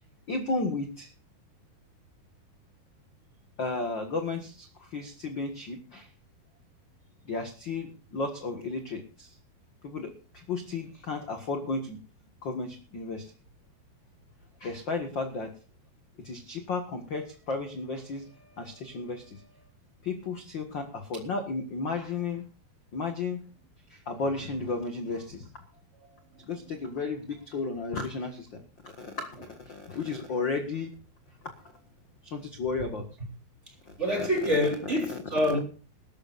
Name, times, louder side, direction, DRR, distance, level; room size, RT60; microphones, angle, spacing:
voice 1, 0.3-1.1 3.6-6.1 7.3-9.4 9.8-12.0 12.4-13.3 14.6-15.5 16.2-19.5 20.0-22.5 22.9-23.4 23.9-25.5 26.4-30.9 31.6-31.7 32.2-33.0 34.2-34.3 35.1-35.2, left 3 dB, 45° left, 1.5 m, -34 dB
voice 2, 34.0-35.6, left 1 dB, 15° right, 3.6 m, -26 dB
23.0 x 13.0 x 2.6 m
omnidirectional pair, 4.6 m